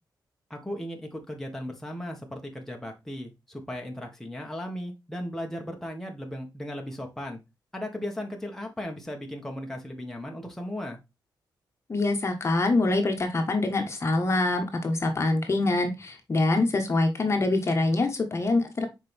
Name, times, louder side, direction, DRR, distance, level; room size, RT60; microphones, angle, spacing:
voice 1, 0.5-7.4 7.7-11.0, left 1 dB, 5° left, 1 dB, 1.5 m, -36 dB
voice 2, 11.9-18.9, left 2 dB, 35° left, 4 dB, 1.3 m, -25 dB
6.6 x 4.7 x 3.4 m, 0.23 s
wide cardioid pair, 110°, 8 cm